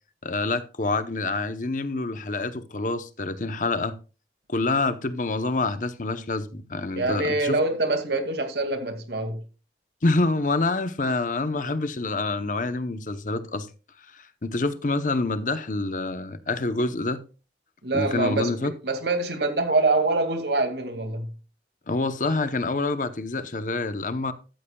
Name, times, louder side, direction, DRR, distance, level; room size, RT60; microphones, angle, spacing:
voice 1, 0.2-4.0 4.5-7.6 10.0-13.7 14.1-17.2 17.9-18.7 21.9-24.3, left 3 dB, 45° left, 0.8 m, -27 dB
voice 2, 6.9-9.4 17.8-21.3, right 2 dB, 75° right, 2.3 m, -25 dB
14.0 x 13.0 x 2.3 m
head